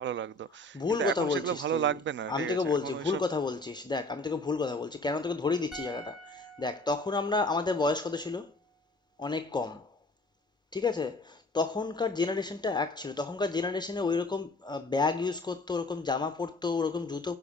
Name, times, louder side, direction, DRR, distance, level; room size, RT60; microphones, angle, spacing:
voice 1, 0.0-3.2, right 10 dB, 40° right, 0.4 m, -33 dB
voice 2, 0.7-1.9 2.3-8.5 9.2-9.9 10.7-17.4, left 4 dB, 15° left, 0.6 m, -31 dB
sound 1, 5.7-8.9 9.2-9.3, right 4 dB, ahead, 1.5 m, -49 dB
14.0 x 5.2 x 4.9 m
cardioid pair, 90°, 30 cm